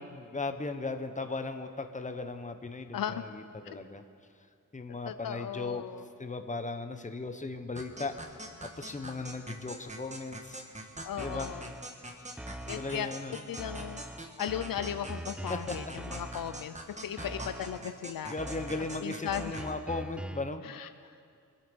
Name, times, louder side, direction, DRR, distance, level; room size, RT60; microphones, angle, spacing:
voice 1, 0.0-4.0 4.7-5.9 6.2-8.2 8.6-10.9 11.2-11.6 12.2-12.3 12.8-13.3 15.5-15.9 17.2-17.3 18.3-20.6, left 3 dB, 20° left, 7 dB, 1.2 m, -37 dB
voice 2, 2.9-3.2 3.7-3.8 5.0-6.0 11.0-11.7 12.7-13.1 13.5-14.0 14.4-16.7 17.0-18.3 19.0-19.6 20.6-20.9, left 9 dB, 80° left, 11 dB, 0.7 m, -36 dB
sound 1, 7.8-19.7, right 1 dB, 20° right, 1.6 m, -45 dB
sound 2, 11.2-12.0 12.4-13.2 13.6-16.8 17.2-18.0 18.4-20.6, right 1 dB, 5° right, 0.3 m, -43 dB
25.5 x 8.7 x 5.5 m, 2.3 s
cardioid pair, 75°, 34 cm